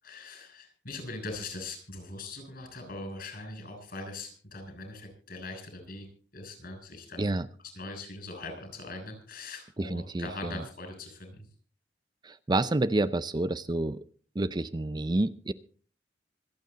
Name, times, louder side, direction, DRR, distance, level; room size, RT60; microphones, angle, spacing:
voice 1, 0.0-6.1 6.3-7.3 7.6-11.5, left 2 dB, 55° left, 4 dB, 6.8 m, -41 dB
voice 2, 9.8-10.5 12.2-14.0 14.4-15.5, right 2 dB, 25° right, 13 dB, 0.5 m, -29 dB
26.0 x 8.9 x 4.0 m, 0.42 s
head